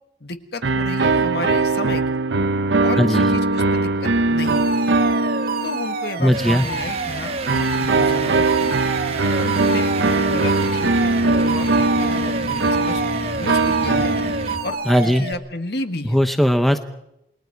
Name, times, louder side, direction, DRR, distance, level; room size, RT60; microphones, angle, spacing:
voice 1, 0.2-2.0 2.8-4.6 5.6-8.7 9.4-13.0 13.3-14.1 14.6-16.2, left 2 dB, 60° left, 8 dB, 1.6 m, -32 dB
sound 1, 0.6-6.4 7.5-14.9, right 3 dB, 75° right, 0.8 m, -20 dB
voice 2, 3.0-3.3 6.2-6.7 14.9-15.3 16.1-16.8, equal, ahead, 7 dB, 0.9 m, -18 dB
Alarm, 4.5-15.3, right 3 dB, 55° right, 1.8 m, -29 dB
sound 2, 6.3-14.8, right 3 dB, 35° right, 1.1 m, -32 dB
28.5 x 21.0 x 4.7 m, 0.82 s
head